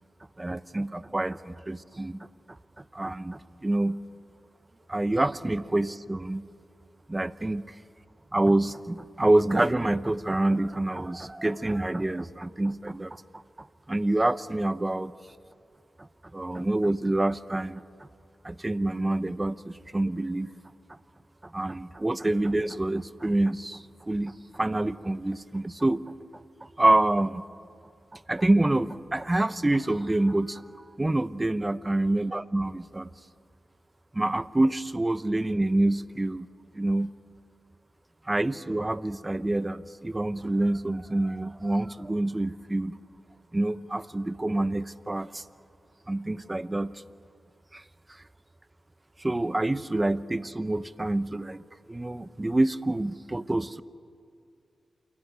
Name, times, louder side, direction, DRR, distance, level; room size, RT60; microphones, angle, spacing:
voice 1, 0.4-2.2 2.8-4.0 4.9-6.4 7.1-7.6 8.3-15.1 16.3-17.8 18.4-20.5 21.4-26.0 26.6-27.4 28.1-30.6 31.0-33.1 34.1-36.5 36.7-37.1 38.3-42.9 43.5-45.4 46.1-46.9 47.7-47.8 49.2-51.6 51.9-53.8, right 2 dB, 25° right, 16 dB, 0.7 m, -27 dB
27.5 x 14.5 x 9.7 m, 2.4 s
cardioid pair, 55°, 0 cm